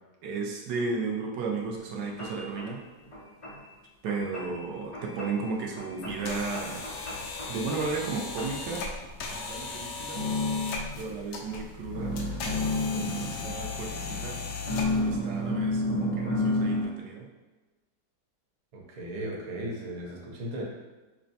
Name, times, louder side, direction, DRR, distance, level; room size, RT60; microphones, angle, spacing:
voice 1, 0.2-2.8 4.0-6.9 7.5-8.9 9.3-10.2 11.0-12.2 12.9-14.4 14.9-17.3, right 4 dB, 85° right, 0 dB, 1.3 m, -34 dB
sound 1, 1.7-1.8 2.2-2.7 3.1-3.6 4.1-4.6 4.9-5.5 5.8-8.1 8.4-8.7 9.6-11.7 11.9-14.1 14.7-16.9, left 1 dB, 35° left, 0.5 m, -31 dB
sound 2, 6.0-15.2, left 4 dB, 75° left, 1.1 m, -37 dB
sound 3, 11.7-16.2, left 3 dB, 60° left, 2.2 m, -45 dB
voice 2, 18.7-20.6, right 1 dB, 50° right, -3 dB, 0.4 m, -36 dB
6.1 x 2.2 x 2.6 m, 1.2 s
omnidirectional pair, 1.8 m